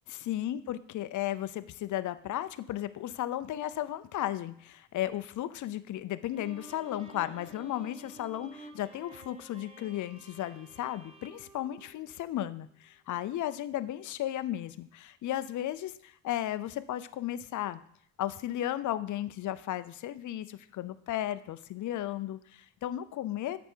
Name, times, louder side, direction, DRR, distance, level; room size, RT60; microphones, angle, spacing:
voice 1, 0.1-17.8 18.2-23.6, left 13 dB, 50° left, 13 dB, 0.6 m, -35 dB
Bowed string instrument, 6.3-12.6, right 2 dB, 15° right, 1.0 m, -52 dB
8.1 x 5.2 x 4.5 m, 0.65 s
cardioid pair, 100°, 40 cm